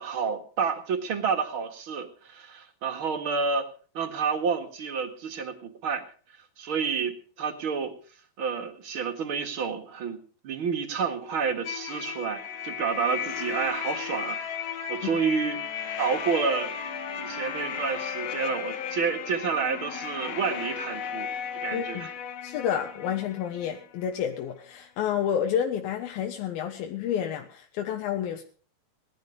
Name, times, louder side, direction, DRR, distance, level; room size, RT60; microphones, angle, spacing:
voice 1, 0.0-3.7 3.9-6.1 6.6-8.0 8.4-10.2 10.4-14.4 14.9-15.6 16.0-16.7 17.2-21.3 21.5-22.1, right 6 dB, 45° right, 6 dB, 2.1 m, -29 dB
sound 1, 11.6-24.3, left 8 dB, 60° left, 2.0 m, -35 dB
voice 2, 21.7-22.1 22.4-28.4, left 9 dB, 85° left, 3 dB, 3.0 m, -30 dB
19.0 x 11.5 x 5.2 m, 0.44 s
omnidirectional pair, 4.2 m